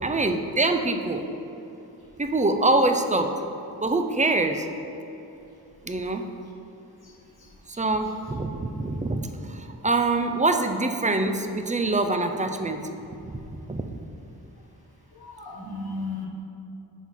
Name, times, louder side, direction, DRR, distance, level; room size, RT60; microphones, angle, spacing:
voice 1, 0.0-1.2 2.2-3.3 3.8-4.7 5.8-6.2 7.7-9.2 9.5-12.9 13.2-14.0, right 2 dB, 20° right, 6 dB, 0.5 m, -25 dB
voice 2, 7.4-7.8 15.1-16.3, left 3 dB, 60° left, -3 dB, 1.3 m, -36 dB
5.8 x 4.5 x 5.8 m, 2.8 s
wide cardioid pair, 60°, 41 cm